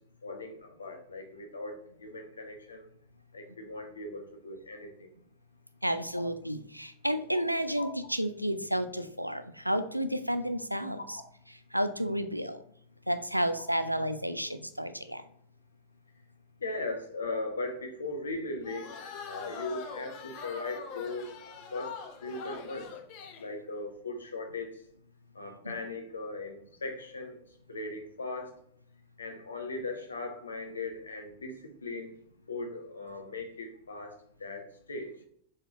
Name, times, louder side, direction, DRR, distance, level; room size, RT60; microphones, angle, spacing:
voice 1, 0.2-2.9 3.3-5.1 7.8-7.9 11.0-11.2 16.6-18.9 19.2-21.3 21.7-22.9 23.4-24.8 25.3-27.4 27.7-28.5 29.2-32.1 32.5-35.1, left 2 dB, 75° left, 4 dB, 0.9 m, -38 dB
voice 2, 5.8-11.2 11.5-12.6 13.1-15.2 25.6-25.7, equal, 90° right, 10 dB, 0.4 m, -31 dB
sound 1, 18.6-23.5, left 5 dB, 45° left, 0.5 m, -43 dB
4.2 x 3.6 x 3.5 m, 0.66 s
figure-of-eight pair, 90°, 0 cm